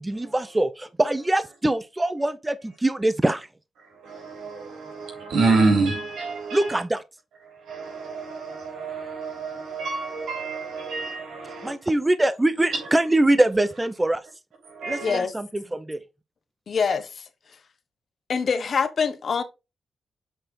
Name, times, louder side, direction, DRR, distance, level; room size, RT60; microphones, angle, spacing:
voice 1, 0.0-3.5 6.5-7.0 11.6-14.2 14.9-16.0, right 1 dB, 15° right, 0.6 m, -23 dB
voice 2, 4.0-6.7 7.7-11.7 14.8-15.2, right 3 dB, 90° right, 3.4 m, -27 dB
voice 3, 15.0-15.3 16.7-17.2 18.3-19.4, left 5 dB, 55° left, 1.1 m, -24 dB
7.9 x 4.3 x 3.7 m
cardioid pair, 85°, 0 cm